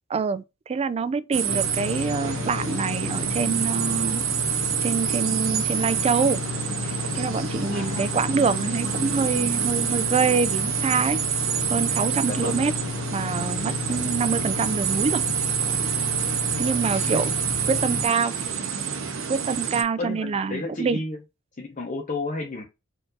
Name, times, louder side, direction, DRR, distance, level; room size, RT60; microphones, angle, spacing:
voice 1, 0.1-4.3 4.8-6.4 6.8-11.2 11.7-12.7 13.1-15.2 15.7-15.8 16.6-17.3 17.7-18.3 19.3-21.0, right 5 dB, 30° right, 0.3 m, -26 dB
sound 1, 1.3-19.8, right 8 dB, 75° right, 0.9 m, -27 dB
sound 2, 1.5-18.1, left 5 dB, 75° left, 0.5 m, -33 dB
voice 2, 7.6-8.2 12.2-12.6 16.9-17.3 20.0-21.2 21.6-22.7, left 2 dB, 40° left, 0.8 m, -32 dB
4.4 x 2.6 x 3.9 m
head